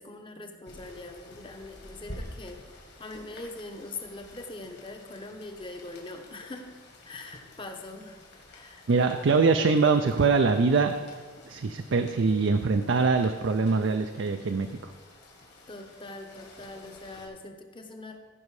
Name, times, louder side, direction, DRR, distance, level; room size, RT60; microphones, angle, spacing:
voice 1, 0.0-2.7 3.0-6.7 7.1-9.3 10.0-10.1 15.7-18.2, left 2 dB, 25° left, 5 dB, 0.9 m, -42 dB
Rain, 0.6-17.3, left 1 dB, 55° left, 2.2 m, -50 dB
voice 2, 8.9-10.9 11.5-14.7, right 4 dB, 65° right, 6 dB, 0.5 m, -23 dB
15.5 x 5.5 x 4.8 m, 1.4 s
head